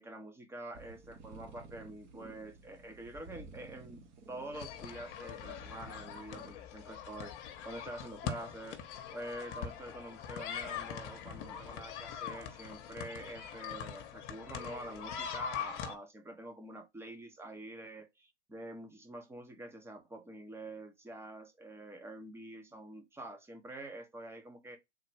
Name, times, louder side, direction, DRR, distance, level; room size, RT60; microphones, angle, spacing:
voice 1, 0.0-8.8 9.1-24.8, right 1 dB, 5° right, 0.9 m, -46 dB
sound 1, 0.7-6.5, right 3 dB, 35° right, 1.2 m, -54 dB
sound 2, 4.5-15.9, left 7 dB, 45° left, 1.0 m, -42 dB
3.7 x 2.9 x 4.5 m
hypercardioid pair, 110°, 35 cm